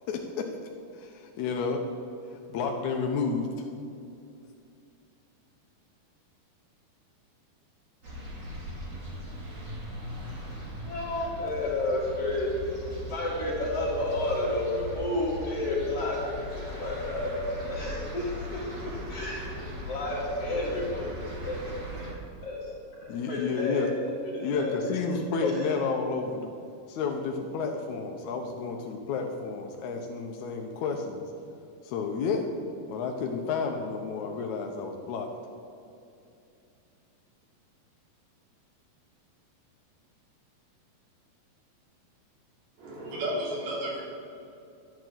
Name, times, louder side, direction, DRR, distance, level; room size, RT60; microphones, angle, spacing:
voice 1, 0.1-0.5 0.9-1.8 2.3-3.5 23.1-23.9 24.4-26.5 26.9-31.2 31.8-32.5 32.9-35.3, left 5 dB, 80° left, 2 dB, 1.7 m, -31 dB
sound 1, 8.0-22.1, equal, 30° right, 2.7 m, -39 dB
voice 2, 10.8-12.5 12.9-18.7 19.1-21.6 21.9-22.7 23.0-24.7 25.2-25.7, left 2 dB, 40° left, -7 dB, 3.1 m, -31 dB
voice 3, 42.8-44.0, right 1 dB, 75° right, -3 dB, 5.0 m, -32 dB
11.5 x 11.0 x 7.5 m, 2.6 s
omnidirectional pair, 4.5 m